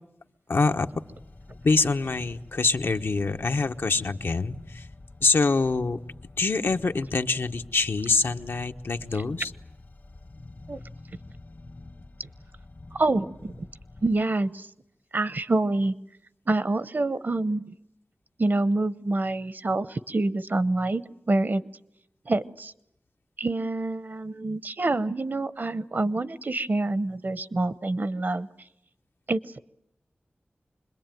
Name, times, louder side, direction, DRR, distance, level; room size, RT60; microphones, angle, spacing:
voice 1, 0.5-0.9 1.6-4.9 5.2-6.0 6.4-9.5, left 3 dB, 75° left, 6 dB, 1.1 m, -25 dB
sound 1, 0.6-14.2, left 2 dB, 50° left, 1.0 m, -47 dB
voice 2, 12.9-13.7 14.0-14.7 15.1-15.9 16.5-17.6 18.4-21.6 22.3-22.7 23.4-28.5 29.3-29.6, right 2 dB, 55° right, 15 dB, 0.9 m, -26 dB
26.0 x 21.5 x 9.2 m, 0.78 s
wide cardioid pair, 80°, 4 cm